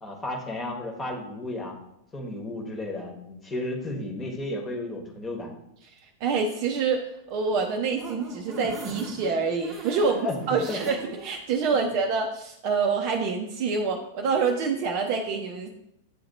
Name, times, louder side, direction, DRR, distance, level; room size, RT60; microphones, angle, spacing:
voice 1, 0.0-1.7 2.1-5.5 10.0-10.3 10.7-10.8 11.7-11.9, left 2 dB, 15° left, 0 dB, 1.2 m, -33 dB
voice 2, 6.2-7.0 7.3-15.7, right 5 dB, 40° right, 3 dB, 0.5 m, -26 dB
sound 1, 7.4-11.3 11.7-11.8 12.2-12.3, right 3 dB, 20° right, 0.9 m, -40 dB
8.3 x 2.9 x 4.1 m, 0.80 s
figure-of-eight pair, 95°, 0 cm